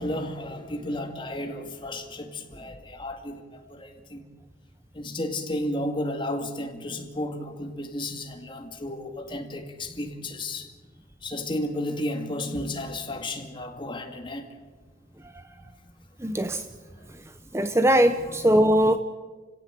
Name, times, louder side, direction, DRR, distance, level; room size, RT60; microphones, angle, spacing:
voice 1, 0.0-4.2 4.9-10.7 11.2-14.5 16.9-17.2 18.2-18.5, left 1 dB, 25° left, 2.1 m, -33 dB
voice 2, 16.2-16.6 17.5-19.0, right 1 dB, 15° right, 0.7 m, -20 dB
29.5 x 16.5 x 7.6 m
head